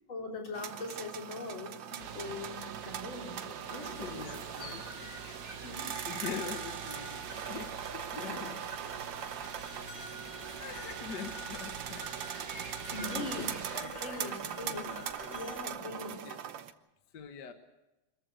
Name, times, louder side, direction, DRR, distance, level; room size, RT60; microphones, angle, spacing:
voice 1, 0.1-4.3 5.6-5.9 8.2-8.5 12.9-13.5 13.8-14.9 15.3-16.3, left 3 dB, 80° left, 1 dB, 4.2 m, -42 dB
sound 1, 0.5-16.7, right 9 dB, 70° right, 1.7 m, -41 dB
sound 2, 2.0-13.8, right 7 dB, 55° right, 1.3 m, -45 dB
voice 2, 3.1-5.5 5.8-8.7 10.4-12.1 12.8-15.6 16.1-16.4 17.1-17.5, left 7 dB, 60° left, 7 dB, 1.7 m, -45 dB
sound 3, 3.7-15.6, equal, 30° left, 4.7 m, -48 dB
25.5 x 14.5 x 8.1 m, 1.0 s
omnidirectional pair, 2.2 m